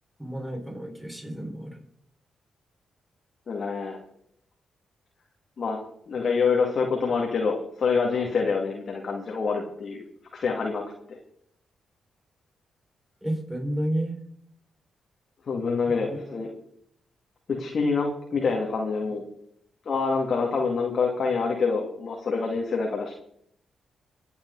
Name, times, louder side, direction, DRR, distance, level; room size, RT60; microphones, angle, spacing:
voice 1, 0.2-1.8 13.2-14.2 15.9-16.4, right 1 dB, 5° right, 1 dB, 5.5 m, -31 dB
voice 2, 3.5-4.0 5.6-10.0 10.3-10.8 11.1-11.2 15.5-16.5 17.5-19.2 19.9-23.1, left 4 dB, 55° left, 0 dB, 2.5 m, -26 dB
25.0 x 8.9 x 4.1 m, 0.69 s
hypercardioid pair, 40°, 0 cm